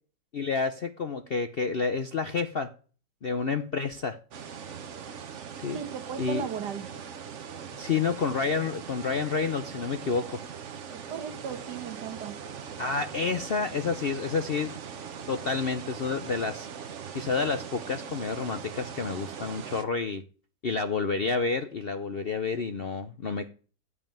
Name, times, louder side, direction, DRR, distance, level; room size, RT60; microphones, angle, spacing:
voice 1, 0.3-2.7 3.2-4.2 5.6-5.8 6.2-6.5 7.7-10.4 12.8-14.7 15.3-16.7 17.1-20.2 20.6-23.5, left 4 dB, 55° left, 0.6 m, -29 dB
sound 1, 4.3-19.8, right 7 dB, 50° right, 1.1 m, -41 dB
voice 2, 5.7-7.0 10.9-12.4, right 7 dB, 70° right, 1.7 m, -37 dB
14.0 x 5.5 x 8.9 m
omnidirectional pair, 1.9 m